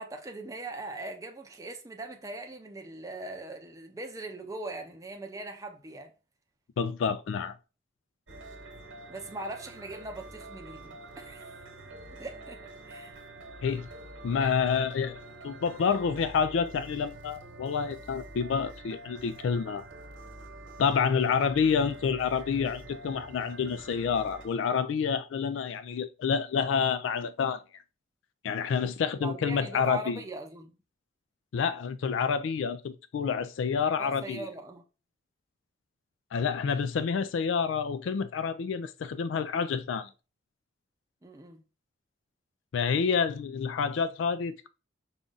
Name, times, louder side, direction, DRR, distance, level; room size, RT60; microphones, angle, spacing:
voice 1, 0.0-6.1 9.1-11.6 12.2-13.1 14.4-14.5 29.2-30.8 34.0-34.8 41.2-41.6, right 2 dB, 15° right, 0.6 m, -41 dB
voice 2, 6.8-7.5 13.6-13.9 14.2-15.2 15.4-19.8 20.8-27.6 28.4-30.2 31.5-34.5 36.3-40.1 42.7-44.7, left 6 dB, 75° left, 0.3 m, -28 dB
sound 1, 8.3-24.5, right 2 dB, 80° right, 1.1 m, -47 dB
5.1 x 2.4 x 3.8 m
head